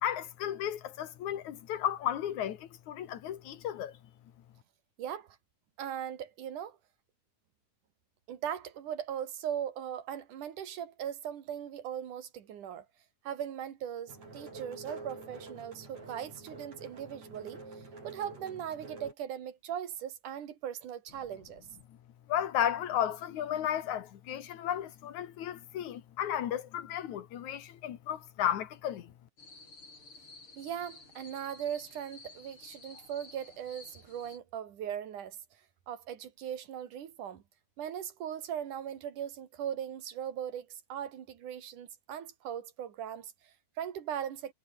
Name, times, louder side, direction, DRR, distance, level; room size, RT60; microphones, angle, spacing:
voice 1, 0.0-3.9 22.3-29.1, left 10 dB, 70° left, 2.9 m, -34 dB
voice 2, 5.0-5.4 5.8-6.8 8.3-12.9 13.2-17.6 18.0-21.7 30.6-35.4 35.9-37.4 37.8-44.5, right 9 dB, 80° right, 3.5 m, -39 dB
sound 1, 14.1-19.1, right 3 dB, 60° right, 9.5 m, -47 dB
sound 2, 29.4-34.4, left 3 dB, 45° left, 7.2 m, -53 dB
omnidirectional pair, 3.5 m